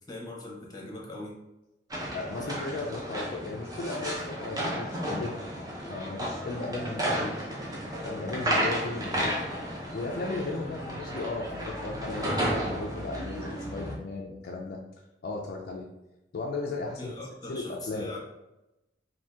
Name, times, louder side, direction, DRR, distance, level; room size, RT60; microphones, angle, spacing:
voice 1, 0.1-1.4 2.4-2.6 17.0-18.2, left 2 dB, 20° left, -3 dB, 0.8 m, -40 dB
sound 1, 1.9-13.9, equal, 20° right, 0.7 m, -33 dB
voice 2, 2.1-5.4 5.9-7.4 8.0-9.4 9.9-14.8 15.2-15.9 16.3-17.1 17.5-18.1, left 3 dB, 55° left, 0 dB, 0.4 m, -36 dB
2.8 x 2.6 x 3.4 m, 0.93 s
head